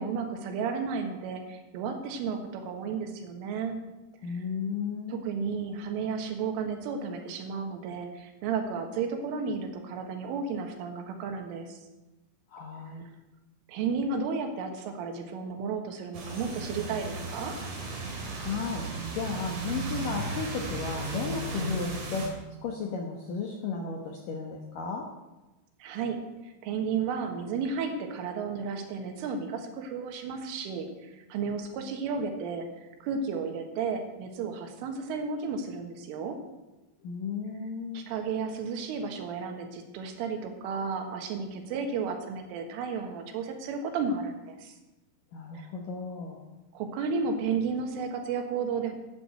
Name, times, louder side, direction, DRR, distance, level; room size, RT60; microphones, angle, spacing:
voice 1, 0.0-3.8 4.3-4.4 5.1-11.8 13.7-17.5 21.5-21.7 25.8-26.2 26.4-32.7 33.0-36.4 37.9-44.8 45.6-45.7 46.7-49.0, right 5 dB, 85° right, 4 dB, 4.1 m, -33 dB
voice 2, 4.2-5.2 12.5-13.0 18.4-18.9 19.1-22.3 22.6-25.1 37.0-38.1 45.3-46.4, left 5 dB, 70° left, 1 dB, 2.0 m, -34 dB
sound 1, 16.1-22.3, right 3 dB, 45° right, 3.1 m, -35 dB
11.5 x 9.4 x 8.0 m, 1.1 s
omnidirectional pair, 5.6 m